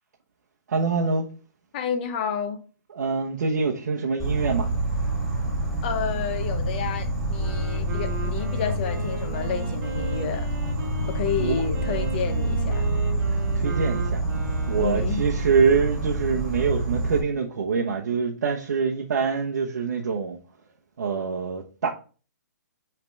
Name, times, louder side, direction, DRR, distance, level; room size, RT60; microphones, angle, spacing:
voice 1, 0.7-1.3 2.9-4.7 11.4-11.6 13.5-14.2 14.7-20.4 21.0-21.9, right 5 dB, 65° right, 1.0 m, -25 dB
voice 2, 1.7-2.6 5.8-10.5 11.1-12.9 14.8-15.2, left 7 dB, 30° left, 0.8 m, -30 dB
Insect, 4.2-17.2, right 2 dB, ahead, 1.5 m, -27 dB
Wind instrument woodwind instrument, 7.2-15.2, right 4 dB, 20° right, 2.3 m, -37 dB
5.8 x 3.4 x 5.2 m
hypercardioid pair, 165°, 10 cm